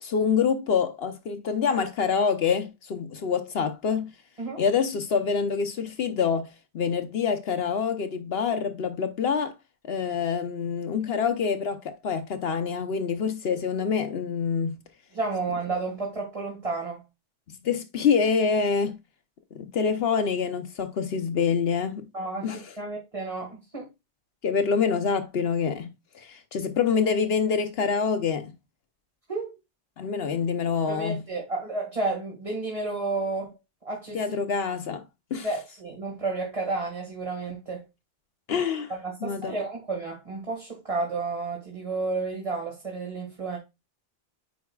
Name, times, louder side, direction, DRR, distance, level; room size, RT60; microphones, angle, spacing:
voice 1, 0.0-4.1 4.6-6.5 6.7-9.5 9.8-14.8 17.5-19.0 19.5-22.1 22.4-22.6 24.4-28.5 30.0-31.3 34.1-35.0 35.3-35.5 38.5-38.9 39.2-39.5, left 6 dB, 65° left, 0.9 m, -26 dB
voice 2, 15.1-17.0 22.1-23.9 29.3-29.5 30.9-33.5 33.9-34.2 35.4-37.8 38.9-43.6, right 3 dB, 30° right, 1.9 m, -31 dB
9.3 x 4.6 x 2.3 m
omnidirectional pair, 1.1 m